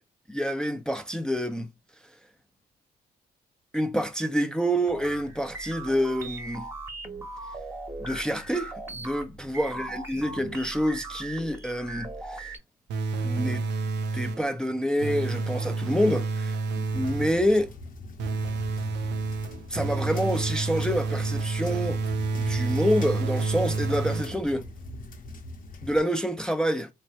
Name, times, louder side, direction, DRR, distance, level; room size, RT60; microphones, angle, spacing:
voice 1, 0.3-1.7 3.7-6.6 8.0-12.5 13.2-13.6 14.1-17.7 19.7-22.0 22.4-24.6 25.8-26.9, equal, 5° left, 0.5 m, -27 dB
sound 1, 4.9-12.6, right 2 dB, 15° right, 0.9 m, -39 dB
sound 2, 12.9-14.6 15.0-17.5 18.2-24.6, right 3 dB, 65° right, 0.5 m, -29 dB
sound 3, 16.9-26.0, left 2 dB, 50° left, 0.7 m, -43 dB
3.2 x 2.1 x 2.7 m
supercardioid pair, 65°, 19 cm